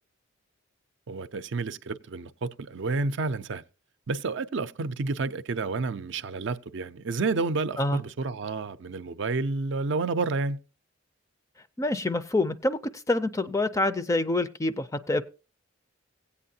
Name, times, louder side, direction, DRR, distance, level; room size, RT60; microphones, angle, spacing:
voice 1, 1.1-3.6 4.1-10.6, right 3 dB, 60° right, 0.5 m, -30 dB
voice 2, 11.8-12.8 13.1-15.2, left 2 dB, 15° left, 0.4 m, -26 dB
16.5 x 8.4 x 2.7 m
head